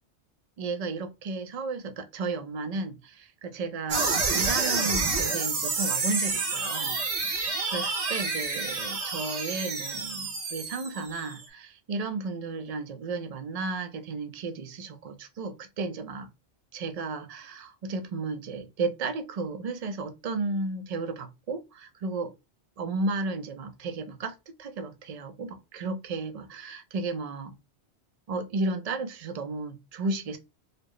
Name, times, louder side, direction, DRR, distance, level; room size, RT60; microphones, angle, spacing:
voice 1, 0.6-7.0 7.4-16.3 16.7-22.3 22.8-27.6 28.3-30.4, right 3 dB, 50° right, 0.5 m, -33 dB
sound 1, 3.9-11.4, right 4 dB, 80° right, 1.2 m, -29 dB
4.1 x 2.0 x 3.1 m
omnidirectional pair, 1.1 m